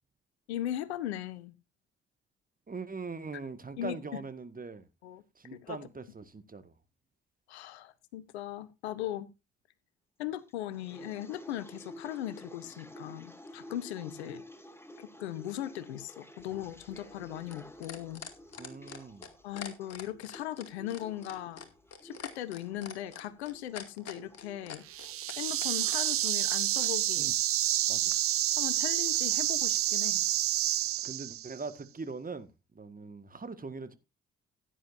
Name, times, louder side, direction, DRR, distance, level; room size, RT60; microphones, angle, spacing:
voice 1, 0.5-1.5 3.8-4.2 5.0-5.2 5.5-5.8 7.5-9.3 10.2-14.4 15.0-18.2 19.4-21.6 22.0-24.8 25.4-27.3 28.6-30.2, left 12 dB, 80° left, 0.9 m, -38 dB
voice 2, 2.7-4.9 5.4-6.7 18.6-19.3 27.2-27.4 27.9-28.2 31.0-32.5 32.8-34.0, right 4 dB, 25° right, 1.7 m, -41 dB
sound 1, 10.5-26.2, equal, 5° left, 2.4 m, -51 dB
sound 2, 16.4-26.9 28.1-28.2, left 7 dB, 50° left, 2.4 m, -45 dB
sound 3, 24.9-31.6, right 14 dB, 45° right, 0.5 m, -29 dB
16.0 x 10.0 x 2.7 m
figure-of-eight pair, 40°, 32 cm